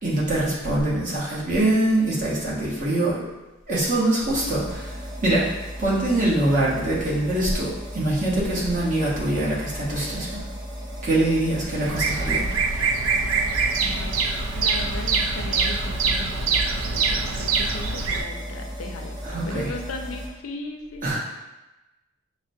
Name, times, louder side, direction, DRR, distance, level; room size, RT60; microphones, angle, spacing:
voice 1, 0.0-3.3 3.7-4.9 5.2-5.5 5.8-10.4 11.0-12.5 19.2-19.7 21.0-21.2, right 1 dB, 40° right, -6 dB, 0.9 m, -23 dB
sound 1, 4.3-20.3, equal, 20° right, 0.5 m, -36 dB
Bird vocalization bird call bird song, 11.8-18.2, right 4 dB, 85° right, 0.4 m, -24 dB
voice 2, 13.8-14.3 14.6-19.2 19.4-21.2, left 3 dB, 85° left, 3 dB, 0.5 m, -37 dB
5.9 x 2.1 x 2.6 m, 1.0 s
head